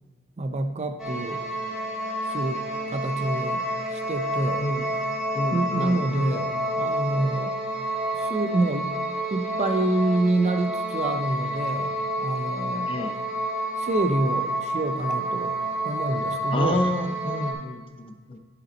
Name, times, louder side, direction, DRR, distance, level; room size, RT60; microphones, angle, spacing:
voice 1, 0.4-1.4 2.3-3.6 3.9-4.7 5.5-7.6 8.1-8.9 9.3-12.9 13.8-15.6 15.8-16.9, right 2 dB, 30° right, 8 dB, 0.4 m, -27 dB
sound 1, 1.0-17.5, right 1 dB, 5° right, 1.6 m, -29 dB
voice 2, 5.3-6.7 12.9-13.2 16.5-18.4, left 1 dB, 25° left, 7 dB, 0.5 m, -30 dB
10.5 x 5.2 x 4.2 m, 1.5 s
head